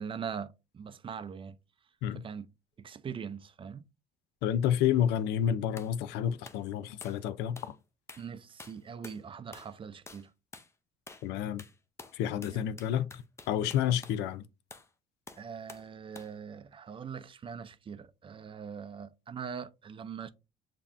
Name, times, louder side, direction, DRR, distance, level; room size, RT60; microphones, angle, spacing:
voice 1, 0.0-1.6 2.1-2.5 2.8-3.8 8.2-10.3 12.5-12.7 15.4-20.3, right 7 dB, 30° right, 0.4 m, -42 dB
voice 2, 4.4-7.8 11.2-11.6 12.1-14.4, left 10 dB, 85° left, 0.4 m, -30 dB
sound 1, 5.8-6.0 6.4-6.6 7.0-7.2 7.6-7.8 8.1-8.3 8.6-9.2 9.5-9.8 10.1-10.3 10.5-10.7 11.1-11.3 11.6-14.2 14.7-14.9 15.3-15.9 16.2-16.4, left 3 dB, 15° left, 0.6 m, -50 dB
7.1 x 2.8 x 2.5 m
cardioid pair, 110°, 17 cm